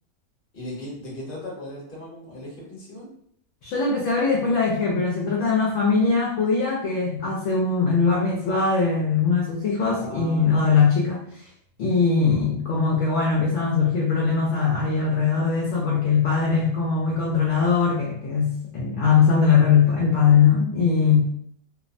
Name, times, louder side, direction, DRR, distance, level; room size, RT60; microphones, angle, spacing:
voice 1, 0.5-3.1 9.9-10.7, left 1 dB, 40° left, -4 dB, 0.9 m, -37 dB
voice 2, 3.6-11.5 11.8-21.2, left 5 dB, 65° left, -3 dB, 0.8 m, -21 dB
2.6 x 2.0 x 2.5 m, 0.66 s
omnidirectional pair, 1.6 m